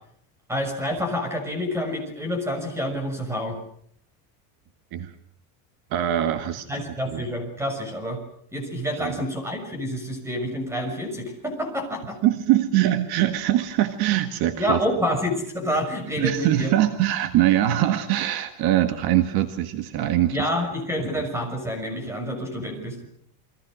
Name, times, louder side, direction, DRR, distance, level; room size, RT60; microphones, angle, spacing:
voice 1, 0.5-3.6 6.7-8.2 8.5-12.2 14.6-16.7 20.3-23.1, equal, 5° right, 6 dB, 6.3 m, -28 dB
voice 2, 5.9-6.7 7.1-7.3 9.0-9.2 12.2-14.8 16.2-20.5, right 13 dB, 55° right, 9 dB, 1.8 m, -22 dB
29.0 x 24.0 x 6.3 m, 0.65 s
cardioid pair, 160°, 45 cm